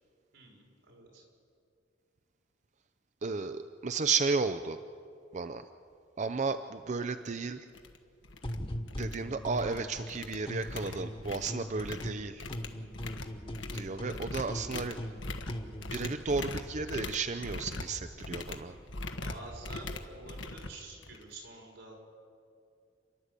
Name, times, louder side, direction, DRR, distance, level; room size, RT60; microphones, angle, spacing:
voice 1, 0.3-1.2 10.8-11.0 18.9-21.9, right 2 dB, 90° right, -1 dB, 5.7 m, -49 dB
voice 2, 3.2-4.8 5.3-5.6 6.2-7.6 9.0-12.4 13.7-15.0 15.9-18.8, right 4 dB, 40° right, 10 dB, 0.5 m, -33 dB
sound 1, 7.2-7.3 7.7-8.0 8.2-8.6 8.9-9.8 10.1-21.3, left 2 dB, 80° left, 1.4 m, -41 dB
sound 2, 8.4-10.1 10.5-12.2 12.5-16.2, equal, 30° left, 1.3 m, -40 dB
30.0 x 11.5 x 8.2 m, 2.3 s
head